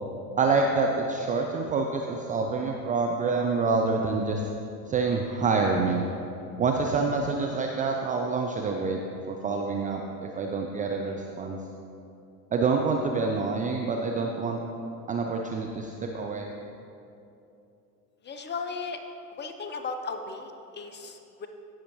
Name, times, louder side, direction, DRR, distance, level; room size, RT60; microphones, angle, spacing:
voice 1, 0.4-4.4 4.9-6.0 6.6-9.0 9.3-11.6 12.5-14.6 15.1-16.5, right 4 dB, 20° right, 2 dB, 0.4 m, -27 dB
voice 2, 18.2-19.0 19.4-21.5, left 4 dB, 20° left, 6 dB, 0.8 m, -36 dB
16.0 x 6.2 x 3.0 m, 2.7 s
hypercardioid pair, 90°, 48 cm